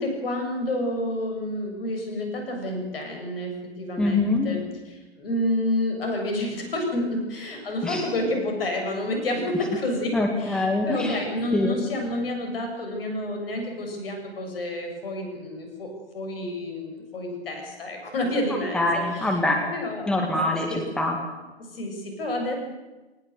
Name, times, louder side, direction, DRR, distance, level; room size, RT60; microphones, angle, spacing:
voice 1, 0.0-19.4 19.7-20.1 20.4-20.8 21.7-22.5, left 1 dB, 60° left, 3 dB, 7.6 m, -29 dB
voice 2, 4.0-4.5 7.8-8.0 10.1-11.2 11.5-11.8 18.7-19.7 20.1-21.2, left 2 dB, ahead, 1 dB, 2.2 m, -24 dB
20.0 x 19.5 x 8.2 m, 1.2 s
figure-of-eight pair, 120°, 33 cm